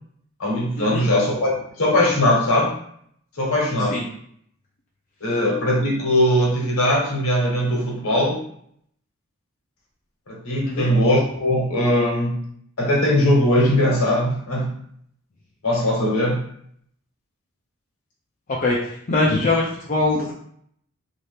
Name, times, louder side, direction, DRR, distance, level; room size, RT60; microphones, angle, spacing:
voice 1, 0.4-2.8 3.4-4.0 5.2-8.4 10.3-12.4 12.8-14.7 15.6-16.5, left 1 dB, 70° left, -2 dB, 1.1 m, -20 dB
voice 2, 19.1-20.3, left 2 dB, 35° left, -3 dB, 0.4 m, -21 dB
2.8 x 2.5 x 3.3 m, 0.65 s
head